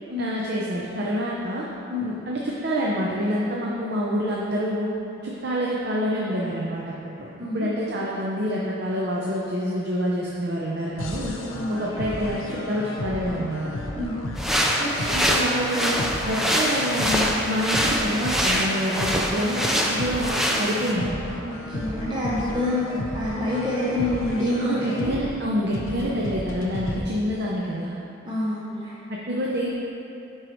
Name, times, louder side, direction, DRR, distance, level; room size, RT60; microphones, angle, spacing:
voice 1, 0.2-1.7 2.0-4.9 5.2-7.3 7.5-11.3 11.7-13.7 15.1-16.0 16.2-21.1 24.6-27.9 29.1-29.7, equal, 55° right, -4 dB, 0.6 m, -27 dB
voice 2, 7.4-7.7 11.5-11.9 14.0-14.2 14.8-15.2 21.4-25.1 28.2-28.9, left 1 dB, 25° right, -8 dB, 0.8 m, -27 dB
sound 1, 11.0-27.0, left 1 dB, 90° left, 0.7 m, -33 dB
sound 2, 14.4-20.9, equal, ahead, 0.4 m, -24 dB
11.0 x 4.6 x 3.1 m, 2.8 s
head